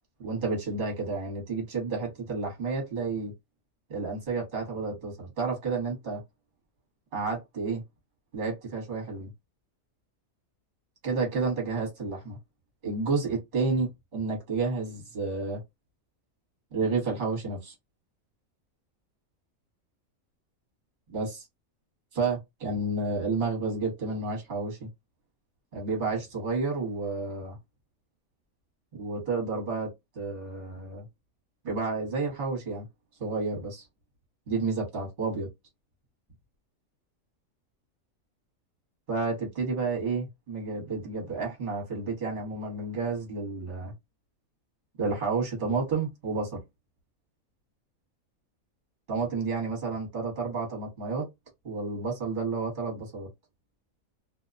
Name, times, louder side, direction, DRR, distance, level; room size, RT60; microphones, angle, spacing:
voice 1, 0.2-3.3 3.9-6.2 7.1-7.8 8.3-9.3 11.0-12.4 12.8-15.6 16.7-17.7 21.1-21.4 22.1-24.9 25.7-27.6 28.9-31.1 31.6-32.9 33.2-33.8 34.5-35.5 39.1-43.9 45.0-46.6 49.1-51.3 51.6-53.3, right 4 dB, 40° right, 1.1 m, -31 dB
2.5 x 2.1 x 2.4 m
omnidirectional pair, 1.4 m